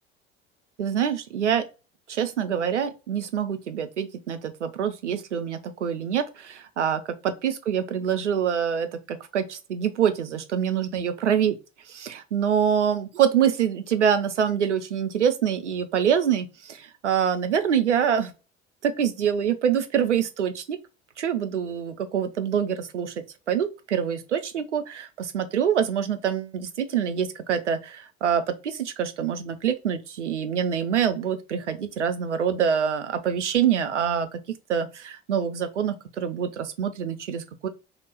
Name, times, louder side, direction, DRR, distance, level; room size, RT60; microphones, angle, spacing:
voice 1, 0.8-1.7 2.1-11.5 12.0-18.3 18.8-20.8 21.2-34.3 34.7-37.7, right 8 dB, 80° right, 0.6 m, -25 dB
2.9 x 2.7 x 4.4 m
figure-of-eight pair, 65°, 35 cm